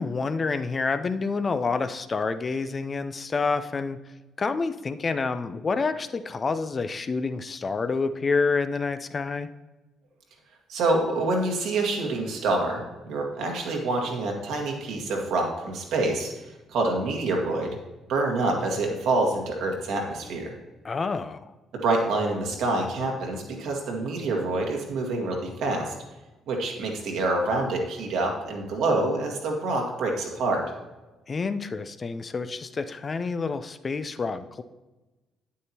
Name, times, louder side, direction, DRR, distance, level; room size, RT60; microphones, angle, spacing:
voice 1, 0.0-4.0 4.4-9.5 20.8-21.5 31.3-34.6, left 4 dB, 40° left, 10 dB, 0.5 m, -28 dB
voice 2, 10.7-17.8 18.1-20.5 21.7-25.9 26.5-30.7, right 2 dB, 70° right, 1 dB, 1.7 m, -27 dB
9.2 x 8.4 x 2.9 m, 1.1 s
hypercardioid pair, 50°, 0 cm